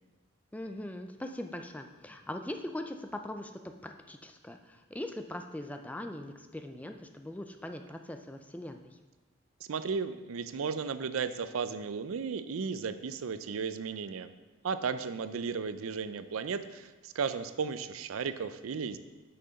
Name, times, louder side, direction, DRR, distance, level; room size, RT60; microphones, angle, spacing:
voice 1, 0.5-3.5 3.8-9.0, left 1 dB, 5° left, 6 dB, 0.3 m, -41 dB
voice 2, 9.7-14.3 14.6-19.0, right 5 dB, 90° right, 12 dB, 0.4 m, -34 dB
6.5 x 5.9 x 5.2 m, 1.2 s
head